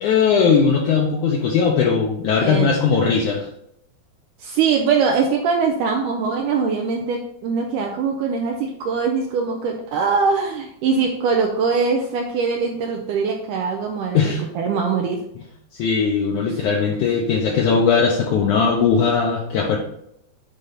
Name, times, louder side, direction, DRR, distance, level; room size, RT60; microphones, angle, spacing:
voice 1, 0.0-3.5 14.1-14.4 15.7-19.8, left 5 dB, 80° left, -1 dB, 1.8 m, -19 dB
voice 2, 2.4-3.0 4.4-14.2 14.6-15.2, right 5 dB, 85° right, 1 dB, 1.9 m, -22 dB
9.1 x 4.1 x 3.9 m, 0.75 s
omnidirectional pair, 4.4 m